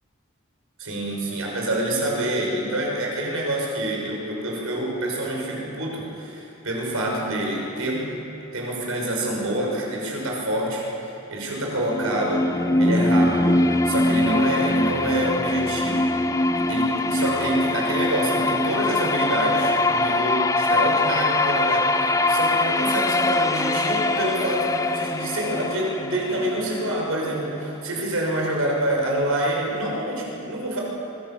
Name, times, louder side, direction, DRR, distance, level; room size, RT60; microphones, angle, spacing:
voice 1, 0.8-8.1 8.5-12.5 12.8-16.1 16.6-30.8, right 1 dB, 85° right, -2 dB, 5.9 m, -27 dB
sound 1, 11.6-27.5, left 2 dB, 15° left, 0.4 m, -23 dB
23.5 x 16.5 x 7.4 m, 2.8 s
head